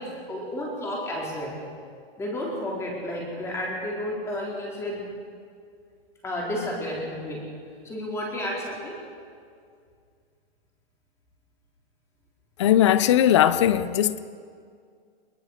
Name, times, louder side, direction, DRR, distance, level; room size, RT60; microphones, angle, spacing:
voice 1, 0.0-1.6 2.2-5.1 6.2-7.4 7.8-9.0, left 1 dB, 10° left, 4.2 m, -31 dB
voice 2, 12.6-14.2, left 11 dB, 30° left, 0.6 m, -19 dB
22.0 x 22.0 x 6.6 m
hypercardioid pair, 165°, 31 cm